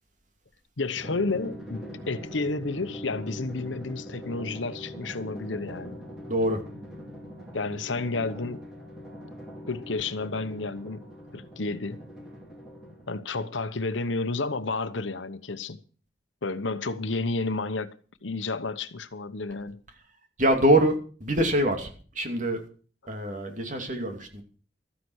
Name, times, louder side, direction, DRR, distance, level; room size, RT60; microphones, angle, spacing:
voice 1, 0.8-6.0 7.5-8.7 9.7-12.0 13.1-15.8 16.4-18.0 18.2-19.8, left 3 dB, 90° left, 1.0 m, -31 dB
Drum, 1.0-13.3, equal, ahead, 3.8 m, -42 dB
voice 2, 6.3-6.6 20.4-21.9 22.1-22.6 23.1-24.4, right 1 dB, 40° right, 2.7 m, -24 dB
13.5 x 9.9 x 6.4 m
head